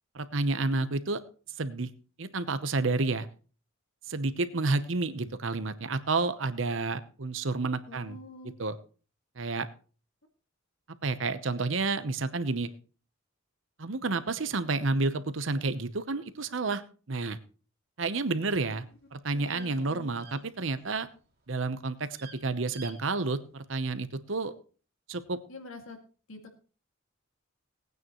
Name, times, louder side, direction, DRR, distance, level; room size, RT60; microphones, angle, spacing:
voice 1, 0.1-1.2 1.6-1.9 2.2-3.3 4.1-8.2 8.6-8.8 9.4-9.7 11.0-12.7 13.8-16.8 17.1-17.4 18.0-18.8 19.1-21.1 21.5-22.1 22.4-24.5 25.1-25.4, right 3 dB, 65° right, 12 dB, 0.9 m, -30 dB
voice 2, 7.9-8.6 18.6-19.0 19.3-20.2 25.5-26.0 26.3-26.4, left 2 dB, 75° left, 4 dB, 2.3 m, -47 dB
sound 1, 18.9-21.1 21.3-21.7 22.0-22.4 22.7-23.0 23.2-23.3, right 6 dB, 50° right, 2.6 m, -50 dB
18.5 x 9.4 x 3.1 m, 0.38 s
head